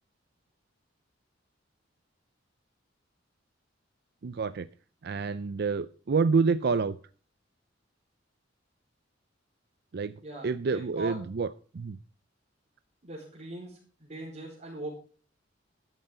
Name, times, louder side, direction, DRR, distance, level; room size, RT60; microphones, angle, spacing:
voice 1, 4.2-4.7 5.0-7.0 9.9-10.1 10.4-11.5 11.7-12.0, right 4 dB, 55° right, 14 dB, 0.5 m, -27 dB
voice 2, 10.2-11.2 13.0-14.9, right 2 dB, 40° right, -4 dB, 4.6 m, -41 dB
13.5 x 13.0 x 3.8 m, 0.39 s
head